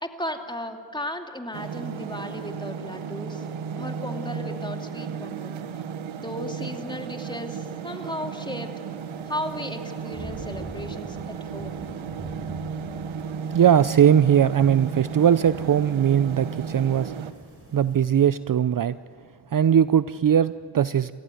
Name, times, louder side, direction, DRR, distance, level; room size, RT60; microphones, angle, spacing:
voice 1, 0.0-3.4 3.8-5.6 6.2-8.7 9.3-11.8, left 1 dB, 10° left, 4 dB, 2.7 m, -35 dB
sound 1, 1.5-17.3, right 6 dB, 90° right, 1.1 m, -34 dB
sound 2, 9.0-18.3, right 1 dB, 30° right, 4.3 m, -45 dB
voice 2, 13.5-17.1 17.7-19.0 19.5-21.1, right 9 dB, 45° right, 15 dB, 0.6 m, -20 dB
29.5 x 15.0 x 9.2 m, 2.1 s
cardioid pair, 55°, 46 cm